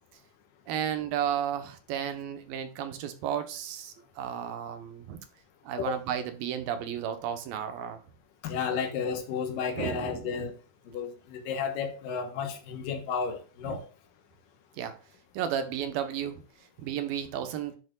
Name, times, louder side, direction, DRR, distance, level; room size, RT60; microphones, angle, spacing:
voice 1, 0.7-5.2 5.6-8.0 8.7-8.8 9.8-10.4 13.7-13.8 14.7-14.9 15.3-17.8, right 9 dB, 80° right, 2.8 m, -33 dB
voice 2, 8.4-10.5 10.9-13.8, left 6 dB, 70° left, 2.7 m, -32 dB
10.5 x 6.7 x 2.4 m
omnidirectional pair, 4.2 m